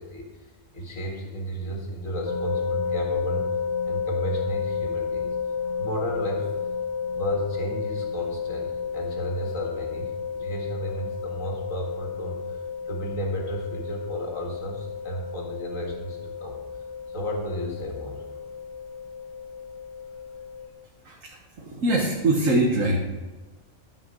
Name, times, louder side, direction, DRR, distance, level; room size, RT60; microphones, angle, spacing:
voice 1, 0.0-3.5 3.8-5.3 5.6-6.5 7.1-16.6 17.1-18.2, equal, 90° left, 0 dB, 2.3 m, -33 dB
sound 1, 2.3-20.7, left 6 dB, 35° left, 0.5 m, -32 dB
voice 2, 21.0-23.0, right 1 dB, 85° right, -1 dB, 1.7 m, -23 dB
13.5 x 5.8 x 6.3 m, 1.2 s
omnidirectional pair, 1.3 m